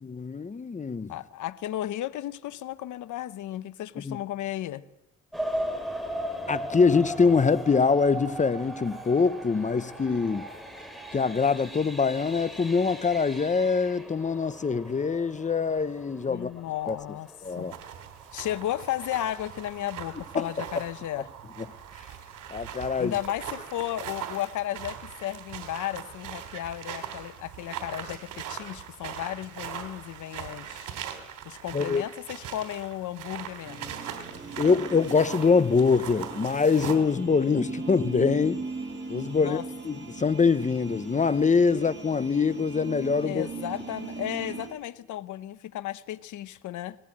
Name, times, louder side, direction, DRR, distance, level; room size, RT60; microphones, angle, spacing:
voice 1, 0.0-1.1 4.0-4.2 6.5-10.5 11.1-16.5 16.9-17.0 17.4-17.8 20.3-20.5 22.5-23.1 31.7-32.0 34.6-38.6 39.1-43.5, left 5 dB, 25° left, 0.8 m, -24 dB
voice 2, 1.1-4.8 16.3-17.3 17.6-17.7 18.3-21.3 23.0-30.9 31.4-33.9 39.4-39.6 41.7-41.8 43.2-47.0, left 13 dB, 75° left, 0.9 m, -34 dB
sound 1, 5.3-18.0 18.6-18.7 19.2-19.3 19.7-19.8, equal, ahead, 4.2 m, -38 dB
sound 2, 17.4-37.0, right 9 dB, 80° right, 3.3 m, -40 dB
sound 3, 33.6-44.7, right 3 dB, 40° right, 7.6 m, -39 dB
19.5 x 18.0 x 8.7 m
cardioid pair, 90°, 30 cm